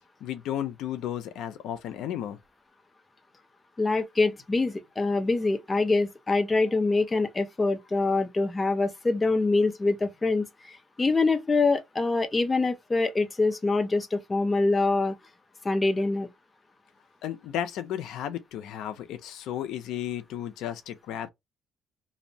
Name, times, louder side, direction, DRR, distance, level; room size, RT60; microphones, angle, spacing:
voice 1, 0.2-2.4 17.2-21.3, left 10 dB, 75° left, 0.4 m, -33 dB
voice 2, 3.8-15.2 15.6-16.3, left 3 dB, 20° left, 0.5 m, -25 dB
2.5 x 2.0 x 2.6 m
cardioid pair, 120°, 0 cm